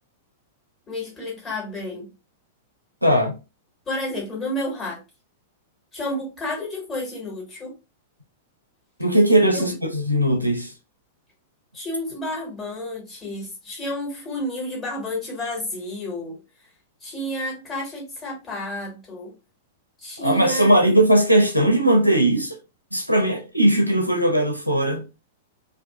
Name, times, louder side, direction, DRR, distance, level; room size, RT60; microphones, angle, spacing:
voice 1, 0.9-2.1 3.8-5.0 5.9-7.7 11.7-16.4 17.0-19.3 20.0-20.7, left 1 dB, 20° left, 1.4 m, -31 dB
voice 2, 3.0-3.4 9.0-10.7 20.2-22.6 22.9-25.0, right 1 dB, 90° right, 0.5 m, -19 dB
2.5 x 2.3 x 2.3 m
figure-of-eight pair, 100°, 0 cm